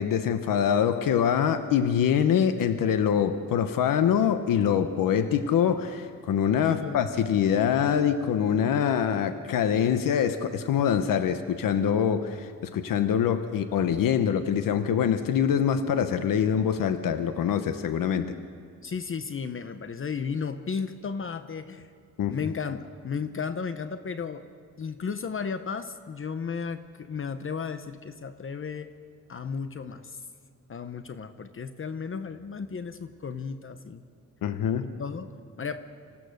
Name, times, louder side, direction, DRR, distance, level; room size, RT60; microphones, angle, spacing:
voice 1, 0.0-18.3 22.2-22.3 34.4-34.8, left 8 dB, 90° left, 9 dB, 1.0 m, -24 dB
voice 2, 6.6-7.0 18.8-21.9 22.3-24.4 24.8-28.9 29.3-30.2 30.7-34.0 34.8-35.3 35.6-35.8, left 6 dB, 40° left, 10 dB, 0.9 m, -34 dB
26.5 x 16.5 x 6.6 m, 2.3 s
cardioid pair, 95°, 32 cm